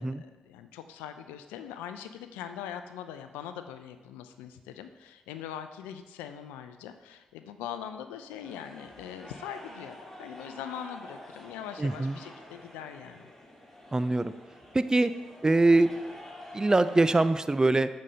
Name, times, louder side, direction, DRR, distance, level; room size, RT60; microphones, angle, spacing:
voice 1, 0.0-13.3, left 9 dB, 85° left, 9 dB, 0.4 m, -42 dB
sound 1, 8.4-17.2, left 1 dB, 15° left, 2.1 m, -48 dB
voice 2, 11.8-12.1 13.9-14.3 14.7-15.1 15.4-15.9 16.5-17.9, right 2 dB, 25° right, 13 dB, 0.4 m, -23 dB
7.5 x 5.2 x 4.2 m, 1.2 s
hypercardioid pair, 40°, 3 cm